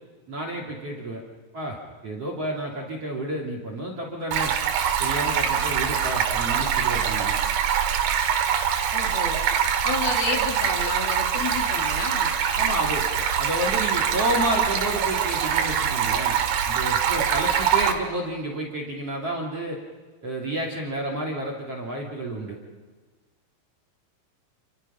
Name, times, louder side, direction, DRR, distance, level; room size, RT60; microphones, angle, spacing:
voice 1, 0.3-1.2 1.5-1.8 2.0-4.5 5.0-7.4 12.5-16.4 16.6-19.8 20.2-22.6, right 1 dB, 35° right, 1 dB, 3.0 m, -30 dB
Stream, 4.3-17.9, right 8 dB, 65° right, 3.7 m, -24 dB
voice 2, 8.9-9.4 9.8-12.3, left 3 dB, 50° left, 1 dB, 4.2 m, -30 dB
29.0 x 28.5 x 5.7 m, 1.4 s
omnidirectional pair, 5.9 m